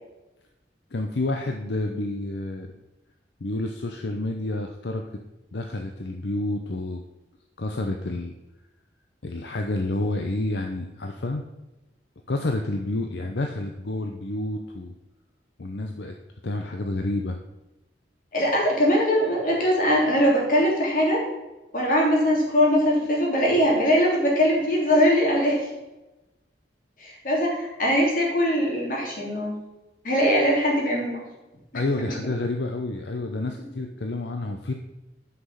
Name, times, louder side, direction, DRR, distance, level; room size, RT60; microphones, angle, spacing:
voice 1, 0.9-2.7 3.4-5.0 5.5-7.0 7.6-8.3 9.2-11.4 12.3-14.9 15.6-16.2 16.4-17.4 31.7-34.7, left 2 dB, 75° left, 4 dB, 0.7 m, -29 dB
voice 2, 18.3-21.2 21.7-25.6 27.0-29.6 30.0-31.2 31.7-31.8, equal, 50° left, -2 dB, 3.1 m, -21 dB
9.4 x 6.0 x 5.7 m, 1.0 s
head